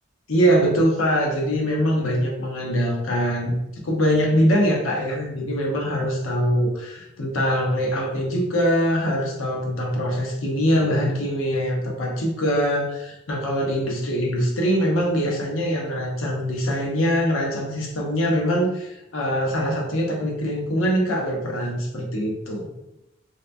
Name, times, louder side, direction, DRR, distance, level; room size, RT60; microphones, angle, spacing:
voice 1, 0.3-3.5 3.8-22.7, equal, 90° left, 0 dB, 0.7 m, -23 dB
2.8 x 2.1 x 2.5 m, 0.90 s
head